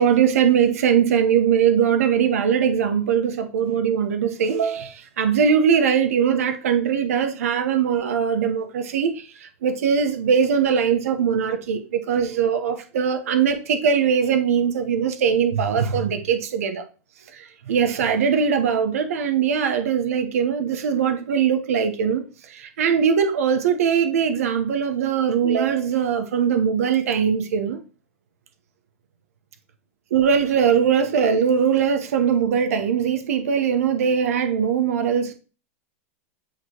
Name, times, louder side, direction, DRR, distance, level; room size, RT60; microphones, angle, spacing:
voice 1, 0.0-16.8 17.3-27.8 30.1-35.3, right 7 dB, 85° right, 0.9 m, -21 dB
8.6 x 3.0 x 4.4 m
supercardioid pair, 150°, 8 cm